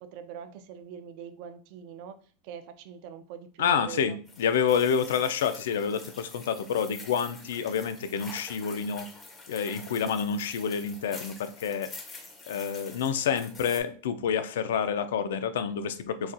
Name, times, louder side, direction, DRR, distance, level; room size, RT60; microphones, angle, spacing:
voice 1, 0.0-2.2 2.4-4.2, right 8 dB, 45° right, 10 dB, 0.3 m, -43 dB
voice 2, 3.6-9.1 9.5-11.9 12.5-16.3, left 7 dB, 85° left, 11 dB, 0.3 m, -28 dB
sound 1, 4.3-13.8, left 3 dB, 15° left, 0.5 m, -46 dB
4.0 x 2.2 x 2.5 m, 0.42 s
supercardioid pair, 165°, 0 cm